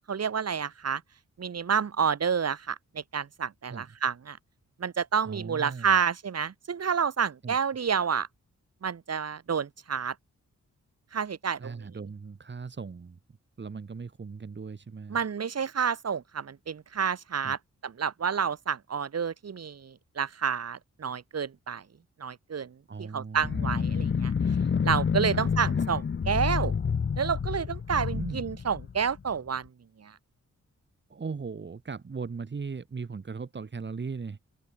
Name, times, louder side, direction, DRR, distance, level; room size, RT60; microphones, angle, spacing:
voice 1, 0.1-1.0 1.4-4.4 4.8-8.3 8.8-10.1 11.1-11.7 15.1-21.8 22.2-24.3 24.8-26.7 27.2-29.7 30.0-30.1, right 6 dB, 60° right, 6.2 m, -29 dB
voice 2, 5.2-6.0 7.4-7.6 11.6-13.2 13.6-15.2 17.4-17.5 22.9-23.8 25.3-25.4 28.1-28.4 31.1-34.4, right 5 dB, 40° right, 5.6 m, -38 dB
sound 1, 23.4-29.4, left 6 dB, 40° left, 1.3 m, -28 dB
open air
wide cardioid pair, 170°, 29 cm